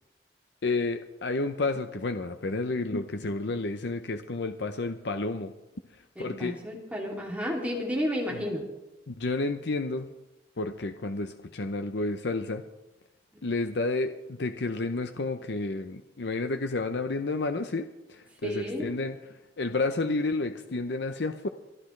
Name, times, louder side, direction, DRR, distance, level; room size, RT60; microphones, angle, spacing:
voice 1, 0.6-5.5 6.2-6.6 9.1-10.1 10.6-12.6 13.4-19.2 19.6-21.5, left 3 dB, 75° left, 8 dB, 0.7 m, -30 dB
voice 2, 6.1-8.6 18.4-18.9, equal, 10° right, -3 dB, 2.8 m, -32 dB
25.0 x 12.5 x 3.3 m, 0.99 s
head